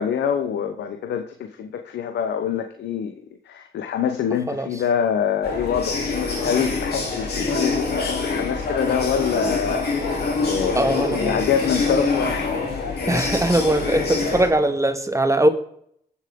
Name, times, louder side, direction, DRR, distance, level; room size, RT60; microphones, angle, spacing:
voice 1, 0.0-3.1 3.5-9.9 10.4-12.6, left 7 dB, 85° left, 7 dB, 0.9 m, -25 dB
sound 1, 5.4-14.5, left 3 dB, 70° left, 3.3 m, -25 dB
voice 2, 10.8-11.4 13.1-15.5, right 1 dB, 15° right, 8 dB, 1.9 m, -20 dB
20.0 x 7.3 x 3.7 m, 0.69 s
supercardioid pair, 45°, 17 cm